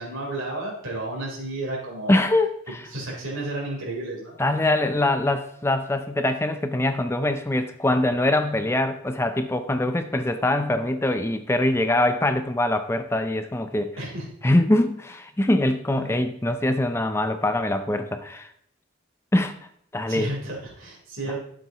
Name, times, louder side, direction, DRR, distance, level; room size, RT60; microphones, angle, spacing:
voice 1, 0.0-2.2 2.9-4.4 14.0-14.3 15.9-16.2 20.1-21.4, right 2 dB, 80° right, -2 dB, 3.5 m, -32 dB
voice 2, 2.1-2.9 4.4-13.9 14.4-18.5 19.3-19.5 19.9-20.3, left 1 dB, 10° left, 8 dB, 0.4 m, -23 dB
12.0 x 7.5 x 3.0 m, 0.68 s
head